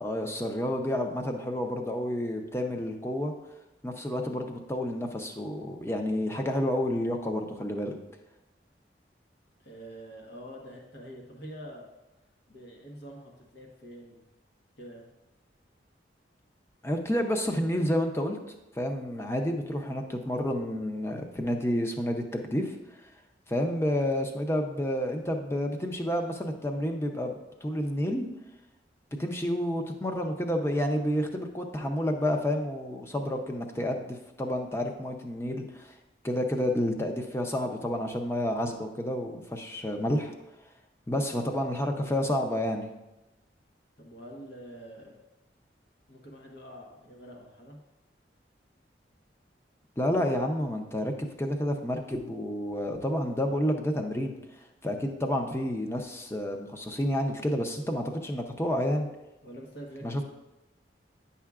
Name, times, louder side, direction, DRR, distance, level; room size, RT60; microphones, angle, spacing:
voice 1, 0.0-3.3 3.8-7.9 16.8-18.4 18.8-22.8 23.5-28.3 29.2-35.9 36.2-40.3 41.1-42.9 50.0-54.4 54.8-59.1 60.0-60.3, left 1 dB, 15° left, 4 dB, 0.6 m, -30 dB
voice 2, 9.6-11.8 12.5-14.3 14.8-15.0 44.0-45.2 46.1-47.8 59.4-60.3, equal, 70° left, -1 dB, 1.2 m, -46 dB
9.5 x 5.6 x 2.4 m, 0.97 s
head